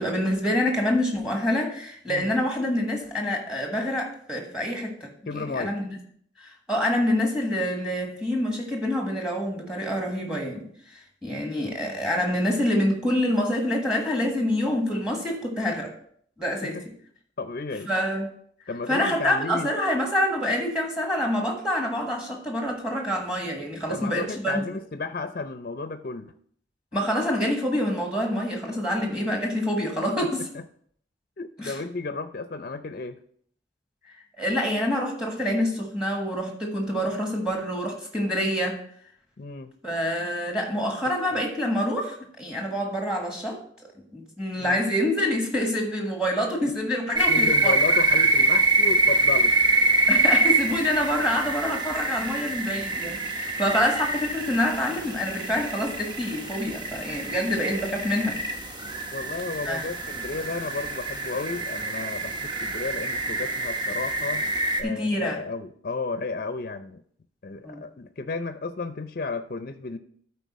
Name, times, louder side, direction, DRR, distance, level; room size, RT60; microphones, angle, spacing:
voice 1, 0.0-5.9 6.4-15.9 16.4-16.8 17.9-18.3 18.9-24.6 26.9-30.5 31.6-31.8 34.1-38.8 39.8-43.6 44.1-47.8 50.1-58.4 59.6-59.9 64.8-65.4 67.6-67.8, left 1 dB, 5° right, 1 dB, 1.4 m, -26 dB
voice 2, 5.3-5.7 16.6-16.8 17.4-17.9 18.7-19.7 23.9-26.3 30.2-30.3 30.5-30.6 31.4-33.2 39.4-39.7 41.3-41.4 44.6-44.8 46.6-46.7 47.3-49.5 59.1-64.5 64.8-67.0 67.4-70.0, left 3 dB, 50° left, 9 dB, 0.5 m, -33 dB
sound 1, 47.2-64.8, right 2 dB, 25° right, 0.9 m, -25 dB
13.0 x 4.5 x 4.1 m, 0.63 s
head